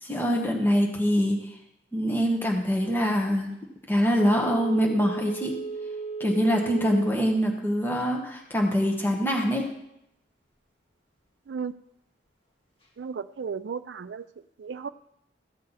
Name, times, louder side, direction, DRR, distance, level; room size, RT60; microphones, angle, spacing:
voice 1, 0.0-1.6 1.9-3.6 3.9-5.6 6.2-9.7, equal, 10° left, 0 dB, 1.3 m, -24 dB
Telephone, 4.2-7.3 7.7-7.8, right 4 dB, 30° left, 1.5 m, -35 dB
voice 2, 13.0-14.2 14.6-14.9, right 6 dB, 80° right, 11 dB, 0.4 m, -34 dB
14.5 x 7.8 x 4.1 m, 0.80 s
head